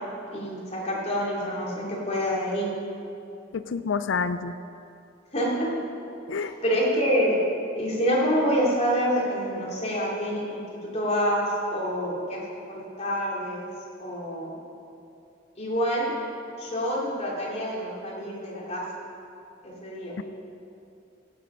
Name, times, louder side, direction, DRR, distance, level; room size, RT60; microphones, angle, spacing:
voice 1, 0.3-2.7 5.3-5.7 6.3-7.4 7.8-13.7 14.0-14.5 15.5-16.1 16.6-18.9 19.6-20.2, equal, 35° left, -5 dB, 3.0 m, -27 dB
voice 2, 3.5-4.5 6.3-6.5 20.2-20.3, left 5 dB, 90° left, 11 dB, 0.4 m, -28 dB
15.0 x 7.6 x 5.6 m, 2.6 s
head